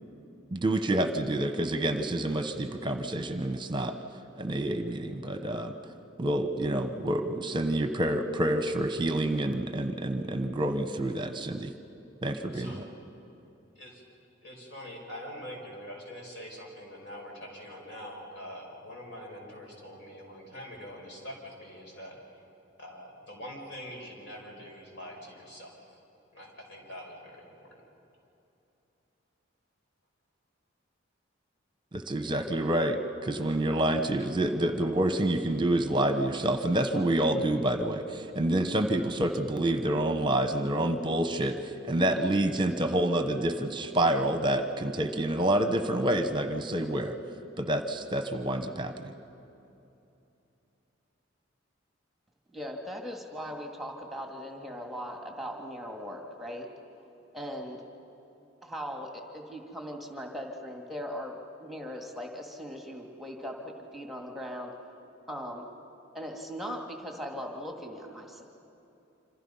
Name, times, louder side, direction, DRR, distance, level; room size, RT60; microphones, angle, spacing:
voice 1, 0.5-3.9 4.3-5.7 6.2-11.7 12.2-12.8 31.9-47.1 47.6-49.1, right 1 dB, 25° right, 7 dB, 1.0 m, -28 dB
voice 2, 14.4-22.2 22.8-25.8 26.3-27.4 27.7-27.8, equal, 65° left, 0 dB, 5.5 m, -44 dB
voice 3, 52.5-56.7 57.3-57.9 58.6-64.7 65.3-65.6 66.1-68.4, equal, ahead, 1 dB, 1.9 m, -39 dB
27.0 x 26.5 x 5.6 m, 2.8 s
head